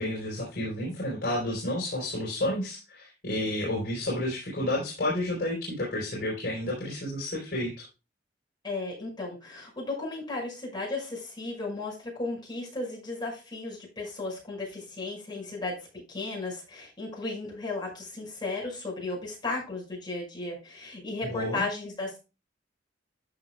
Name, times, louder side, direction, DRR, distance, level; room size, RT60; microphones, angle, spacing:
voice 1, 0.0-7.9 21.2-21.7, left 1 dB, 55° left, -4 dB, 4.4 m, -31 dB
voice 2, 8.6-22.2, left 3 dB, 25° left, -2 dB, 5.6 m, -35 dB
13.5 x 6.2 x 2.2 m, 0.29 s
head